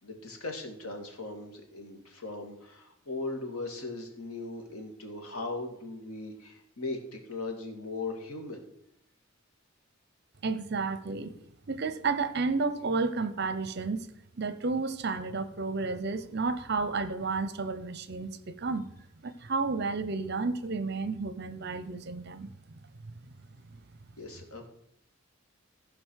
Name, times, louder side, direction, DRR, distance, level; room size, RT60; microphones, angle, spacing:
voice 1, 0.0-8.6 24.2-24.7, left 3 dB, 85° left, 4 dB, 2.3 m, -38 dB
voice 2, 10.4-11.3 11.7-14.1 14.4-18.8 19.2-22.8 23.1-23.3, right 4 dB, 50° right, 13 dB, 0.8 m, -32 dB
14.5 x 5.2 x 6.4 m, 0.75 s
head